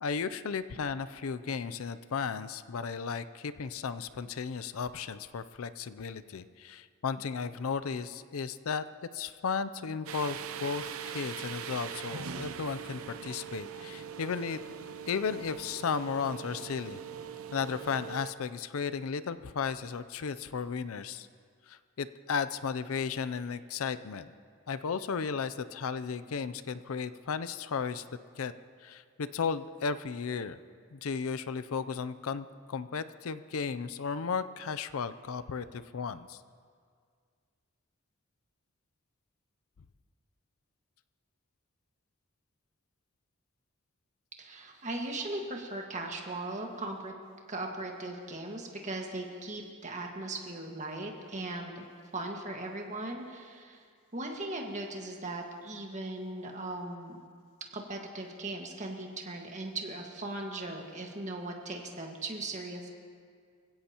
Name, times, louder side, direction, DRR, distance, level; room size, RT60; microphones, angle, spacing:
voice 1, 0.0-8.8 9.1-14.6 15.1-17.0 17.5-21.3 21.7-24.3 24.7-28.0 28.4-28.5 28.8-30.6 30.9-36.4, left 5 dB, 70° left, 13 dB, 0.5 m, -34 dB
sound 1, 10.1-18.3, right 7 dB, 70° right, 0.6 m, -41 dB
voice 2, 44.4-47.1 47.5-51.9 52.1-53.8 54.1-57.2 57.7-62.9, right 2 dB, 35° right, 1 dB, 1.7 m, -38 dB
26.0 x 16.5 x 3.0 m, 2.1 s
head